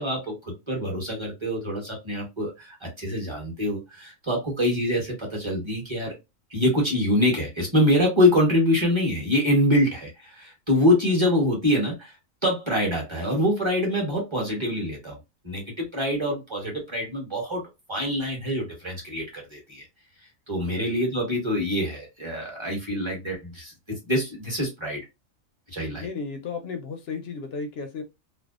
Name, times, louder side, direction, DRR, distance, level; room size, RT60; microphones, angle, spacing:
voice 1, 0.0-6.1 6.5-12.1 12.4-15.2 15.4-17.6 17.9-19.8 20.5-23.7 24.0-25.0 25.7-26.1, left 1 dB, 25° right, 0.9 m, -25 dB
voice 2, 26.0-28.0, left 4 dB, 65° left, 0.6 m, -34 dB
2.6 x 2.1 x 2.3 m
omnidirectional pair, 1.4 m